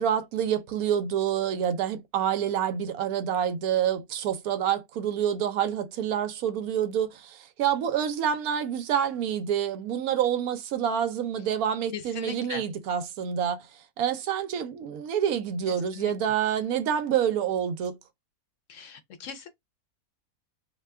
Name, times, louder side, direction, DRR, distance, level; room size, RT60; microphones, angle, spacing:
voice 1, 0.0-17.9, right 9 dB, 75° right, 1.0 m, -27 dB
voice 2, 11.9-12.6 16.0-16.1 18.7-19.5, left 8 dB, 65° left, 0.8 m, -39 dB
2.7 x 2.2 x 3.3 m
omnidirectional pair, 1.6 m